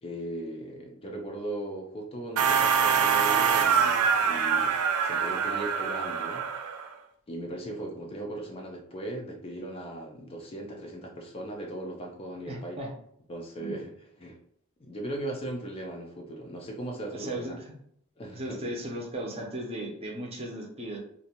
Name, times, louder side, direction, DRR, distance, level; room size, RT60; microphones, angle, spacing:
voice 1, 0.0-6.5 7.3-12.8 13.3-13.9 14.2-14.4 14.8-17.4 18.2-18.7, right 1 dB, 25° left, 0 dB, 0.4 m, -38 dB
sound 1, 2.4-6.9, right 7 dB, 70° right, 0.4 m, -25 dB
voice 2, 12.5-12.9 13.6-13.8 17.1-17.7 18.3-21.0, right 1 dB, 25° right, -1 dB, 0.6 m, -36 dB
2.6 x 2.2 x 2.8 m, 0.68 s
head